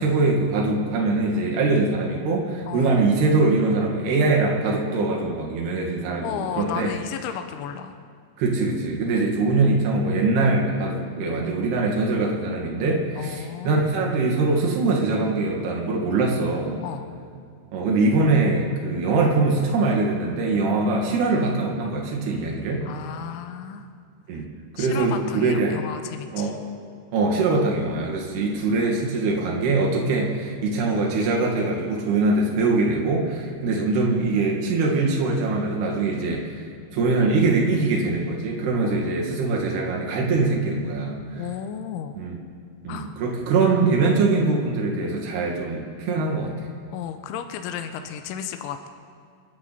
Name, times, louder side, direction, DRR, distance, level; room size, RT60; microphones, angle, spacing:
voice 1, 0.0-6.9 8.4-16.8 17.7-22.8 24.3-24.5 24.8-25.7 26.3-26.6 27.1-36.6 36.9-41.4 42.2-42.4 42.8-46.5, right 3 dB, 55° right, -1 dB, 3.9 m, -23 dB
voice 2, 2.7-3.3 6.2-7.9 13.2-13.8 16.8-17.1 22.8-23.9 24.8-26.5 38.8-39.6 41.4-42.2 42.9-43.1 46.9-48.9, left 9 dB, 80° left, 7 dB, 2.9 m, -34 dB
29.0 x 11.0 x 4.3 m, 2.3 s
omnidirectional pair, 6.0 m